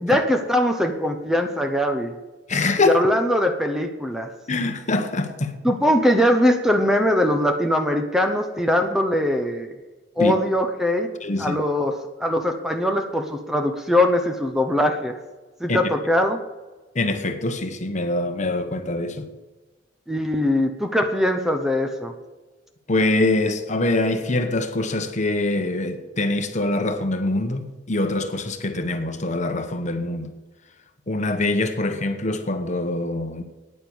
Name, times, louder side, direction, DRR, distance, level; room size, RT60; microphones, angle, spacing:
voice 1, 0.0-2.1 2.8-4.3 5.6-9.7 10.2-11.1 11.4-15.1 15.6-16.4 20.1-22.1, left 1 dB, ahead, 0.9 m, -21 dB
voice 2, 2.5-3.0 4.5-5.5 10.2-10.3 11.2-11.6 15.7-15.8 16.9-19.2 22.9-30.3 31.1-33.4, left 2 dB, 40° left, 1.1 m, -24 dB
9.7 x 9.6 x 7.1 m
head